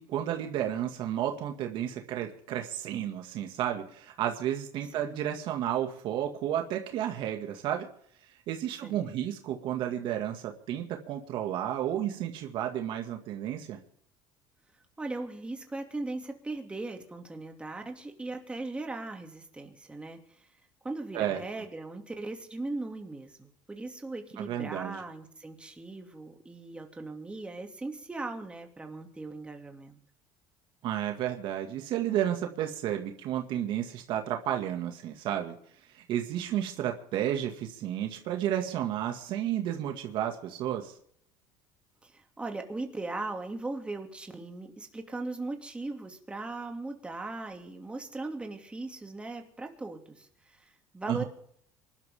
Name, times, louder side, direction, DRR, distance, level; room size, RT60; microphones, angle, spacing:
voice 1, 0.0-7.9 8.5-13.8 21.1-21.4 24.4-25.0 30.8-35.5 35.9-41.0 51.1-51.2, right 11 dB, 60° right, 3 dB, 2.1 m, -32 dB
voice 2, 15.0-20.5 20.8-30.0 42.0-51.2, right 2 dB, 10° right, 3 dB, 2.5 m, -39 dB
25.5 x 12.5 x 3.7 m, 0.65 s
cardioid pair, 125°, 9 cm